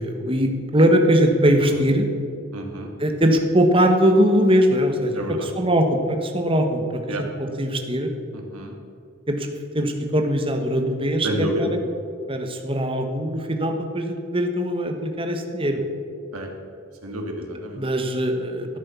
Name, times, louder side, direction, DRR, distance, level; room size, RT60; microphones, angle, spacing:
voice 1, 0.0-2.1 3.0-8.1 9.3-9.5 9.7-11.8 12.3-15.8 17.8-18.8, equal, 25° right, 5 dB, 1.3 m, -21 dB
voice 2, 2.5-2.9 5.1-5.5 7.1-7.3 8.3-8.7 11.2-11.7 16.3-16.5 17.0-17.8, right 1 dB, 90° right, 2 dB, 2.2 m, -29 dB
14.0 x 8.8 x 7.1 m, 2.5 s
head